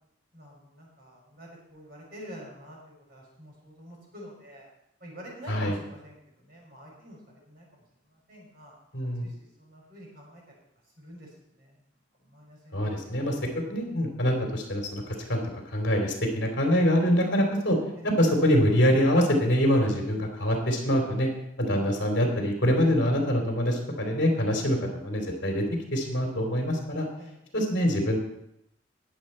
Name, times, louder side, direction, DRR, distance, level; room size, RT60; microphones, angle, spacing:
voice 1, 0.3-4.7 5.0-7.2 7.4-7.7 8.1-8.7 9.2-10.4 11.0-11.8 12.2-13.1 14.5-14.7 18.0-18.1 20.1-20.3 21.7-21.9 27.2-27.4, equal, 50° right, -3 dB, 6.0 m, -47 dB
voice 2, 8.9-9.3 12.7-13.3 13.7-15.4 15.7-17.8 18.2-21.3 21.6-25.6 25.9-27.1 27.5-28.2, equal, 55° left, 2 dB, 2.9 m, -24 dB
20.5 x 7.6 x 4.3 m, 0.79 s
head